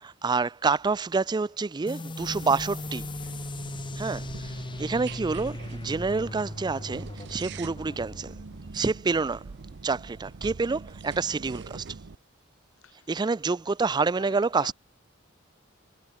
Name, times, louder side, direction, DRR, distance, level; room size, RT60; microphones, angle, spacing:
voice 1, 0.0-3.1 4.0-8.3 8.7-9.4 9.8-11.9 13.1-14.7, right 4 dB, 20° right, 0.4 m, -28 dB
sound 1, 1.9-9.1, left 2 dB, 25° left, 1.0 m, -38 dB
sound 2, 2.2-12.2, right 4 dB, 60° right, 0.6 m, -43 dB
voice 2, 12.8-13.2 13.5-13.6 14.0-14.7, left 5 dB, 80° left, 0.8 m, -49 dB
head